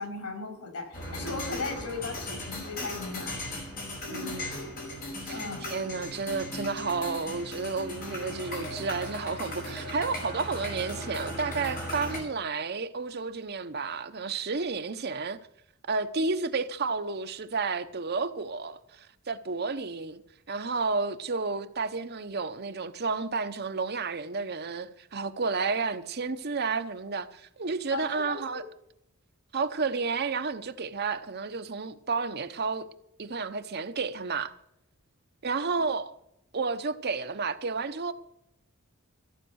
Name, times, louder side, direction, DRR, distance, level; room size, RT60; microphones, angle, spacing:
voice 1, 0.0-3.4 4.1-4.6 5.3-5.6 27.9-28.6 35.8-35.9, left 3 dB, 90° left, 5.6 m, -37 dB
sound 1, 0.9-12.2, left 1 dB, 40° left, 5.1 m, -37 dB
voice 2, 4.1-4.5 5.2-5.4 5.7-15.4 15.9-20.2 20.5-28.6 29.5-32.9 33.2-34.5 35.4-36.1 36.5-38.1, right 4 dB, 45° right, 0.8 m, -31 dB
14.5 x 8.9 x 6.3 m
head